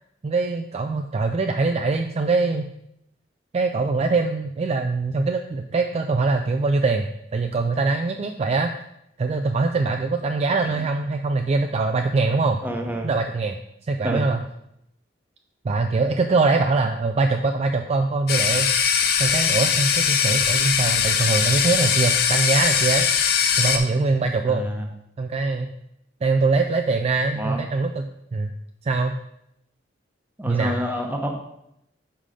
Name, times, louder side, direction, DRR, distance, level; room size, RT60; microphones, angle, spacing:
voice 1, 0.2-2.7 3.5-8.7 9.2-12.6 13.0-13.6 13.9-14.4 15.6-18.7 19.2-23.1 23.6-24.7 25.2-25.7 26.2-28.5 28.8-29.2 30.5-30.8, right 3 dB, 35° right, 5 dB, 0.3 m, -23 dB
voice 2, 12.6-13.1 14.0-14.3 24.5-24.9 27.4-27.6 30.4-31.4, equal, 10° right, 2 dB, 0.9 m, -28 dB
sound 1, 18.3-23.8, left 7 dB, 55° left, 0.6 m, -21 dB
5.6 x 4.9 x 5.0 m, 0.80 s
head